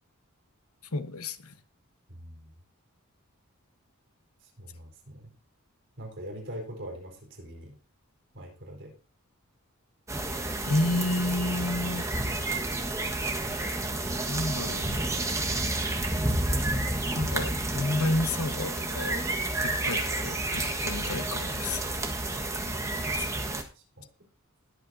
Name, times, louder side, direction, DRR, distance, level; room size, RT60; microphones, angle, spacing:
voice 1, 0.9-1.6 10.7-12.1 13.5-13.8 14.3-15.2 17.1-19.2 19.6-22.2, left 2 dB, 80° left, 1.2 m, -31 dB
voice 2, 2.1-2.5 4.4-5.3 6.0-7.8 8.3-8.9 23.7-24.1, equal, 55° right, 4.5 m, -43 dB
sound 1, 10.1-23.6, right 2 dB, 15° right, 1.5 m, -30 dB
21.0 x 8.5 x 2.8 m
head